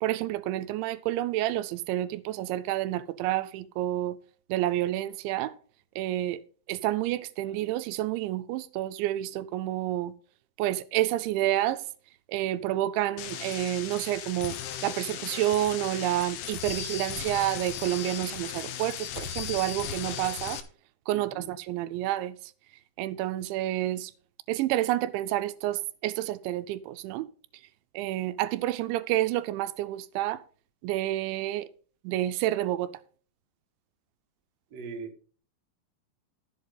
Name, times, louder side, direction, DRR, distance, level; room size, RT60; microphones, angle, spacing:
voice 1, 0.0-4.2 4.5-5.5 6.0-6.4 6.7-10.1 10.6-11.8 12.3-20.6 21.1-22.5 23.0-24.1 24.5-27.3 27.9-30.4 30.8-31.7 32.0-32.9, right 14 dB, 90° right, 3.0 m, -29 dB
sound 1, 13.2-20.6, left 10 dB, 70° left, 3.0 m, -37 dB
voice 2, 21.1-21.5 34.7-35.3, right 4 dB, 40° right, 2.8 m, -41 dB
14.5 x 8.0 x 4.0 m
omnidirectional pair, 5.2 m